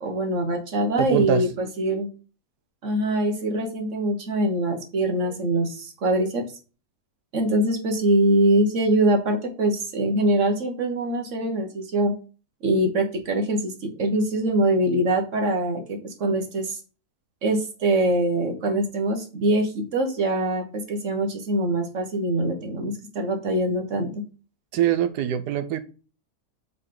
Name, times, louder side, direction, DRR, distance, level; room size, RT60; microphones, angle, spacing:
voice 1, 0.0-2.1 2.8-6.4 7.3-12.1 12.6-16.8 17.4-24.2, right 1 dB, 55° right, 4 dB, 1.4 m, -23 dB
voice 2, 1.0-1.4 24.7-25.8, right 10 dB, 85° right, 11 dB, 1.3 m, -23 dB
7.9 x 4.0 x 3.8 m, 0.35 s
omnidirectional pair, 1.7 m